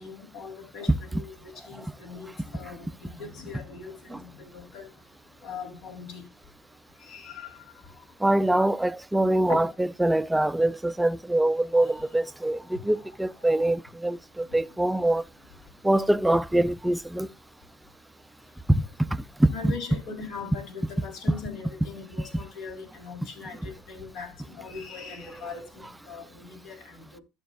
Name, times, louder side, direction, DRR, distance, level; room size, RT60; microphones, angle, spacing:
voice 1, 0.0-4.9 5.4-6.2 7.0-7.6 8.4-8.5 9.5-9.7 19.5-27.2, left 5 dB, 70° left, 4.2 m, -40 dB
voice 2, 8.2-15.2 15.8-17.3 18.7-19.7, right 1 dB, 5° right, 0.5 m, -24 dB
13.0 x 7.8 x 2.6 m
cardioid pair, 125°, 0 cm